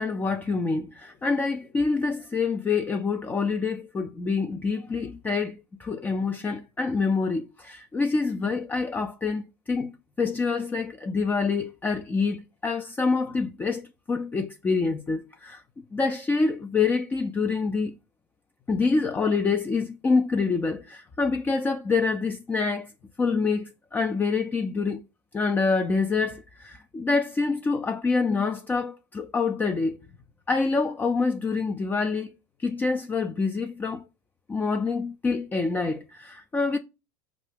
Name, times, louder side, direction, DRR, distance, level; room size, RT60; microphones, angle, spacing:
voice 1, 0.0-9.9 10.2-15.6 15.9-18.0 18.7-22.9 23.2-25.0 25.3-30.0 30.5-32.3 32.6-34.0 34.5-36.8, left 4 dB, 20° left, 0.4 m, -26 dB
4.5 x 2.5 x 3.3 m
hypercardioid pair, 90°, 10 cm